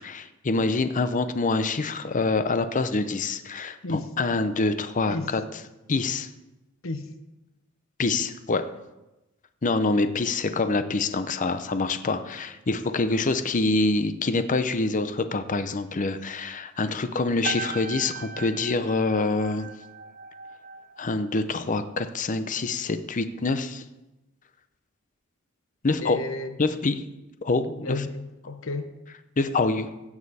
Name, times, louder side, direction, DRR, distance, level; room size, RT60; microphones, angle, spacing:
voice 1, 0.0-5.4 5.9-6.3 8.0-8.7 9.6-19.7 21.0-23.8 25.8-26.2 26.6-26.9 27.4-28.0 29.4-29.9, left 3 dB, 35° left, 11 dB, 0.6 m, -26 dB
sound 1, 17.4-22.1 22.3-22.7, right 6 dB, 40° right, 0.5 m, -39 dB
voice 2, 26.0-26.5 27.8-28.9, left 2 dB, 65° left, 9 dB, 1.0 m, -32 dB
16.0 x 7.3 x 4.2 m, 1.0 s
head